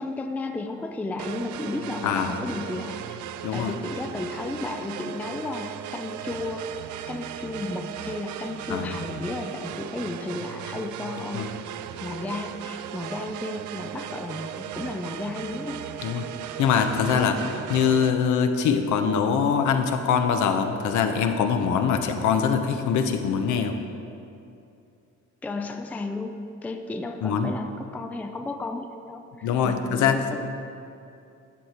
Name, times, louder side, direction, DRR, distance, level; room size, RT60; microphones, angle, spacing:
voice 1, 0.0-3.2 3.5-6.7 7.1-15.9 25.4-30.4, left 2 dB, 5° left, 6 dB, 0.4 m, -33 dB
sound 1, 1.2-18.1, right 10 dB, 70° right, 0.6 m, -37 dB
voice 2, 2.0-2.4 3.4-3.7 8.7-9.0 11.3-11.5 16.0-16.3 16.6-17.4 17.7-23.8 27.2-27.5 29.4-30.2, left 7 dB, 70° left, 6 dB, 1.0 m, -23 dB
13.0 x 8.2 x 4.4 m, 2.7 s
cardioid pair, 145°, 30 cm